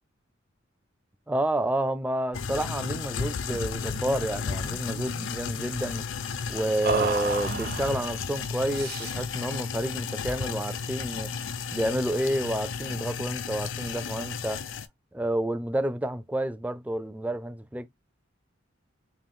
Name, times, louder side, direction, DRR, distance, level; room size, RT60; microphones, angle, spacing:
voice 1, 1.3-6.0 6.5-11.3 11.7-14.6 15.1-17.9, right 1 dB, 5° right, 0.3 m, -29 dB
sound 1, 2.3-14.9, left 5 dB, 65° left, 0.4 m, -33 dB
sound 2, 3.5-3.7 3.9-4.2 4.5-5.3 6.8-8.1 8.7-9.3, right 4 dB, 50° right, 0.6 m, -32 dB
3.7 x 2.6 x 3.5 m
head